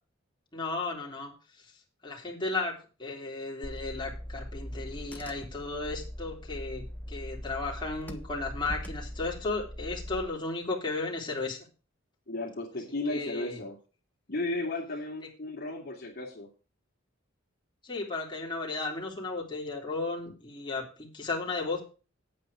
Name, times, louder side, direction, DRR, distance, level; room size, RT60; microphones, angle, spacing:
voice 1, 0.5-1.7 2.0-2.7 3.0-11.6 13.1-13.6 17.8-21.8, left 3 dB, 25° left, -3 dB, 3.5 m, -34 dB
Car / Engine, 3.6-10.2, equal, 10° left, 1.2 m, -41 dB
voice 2, 12.3-13.8 14.3-16.5, left 2 dB, 50° left, -2 dB, 2.6 m, -34 dB
9.2 x 9.0 x 5.0 m, 0.34 s
head